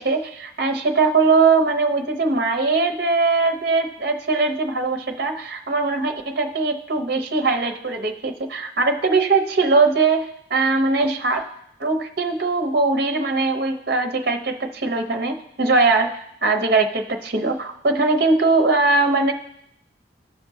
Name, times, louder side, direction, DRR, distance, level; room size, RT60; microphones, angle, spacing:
voice 1, 0.0-11.4 11.8-19.3, right 3 dB, 55° right, 4 dB, 0.8 m, -21 dB
14.5 x 5.8 x 2.7 m, 0.75 s
head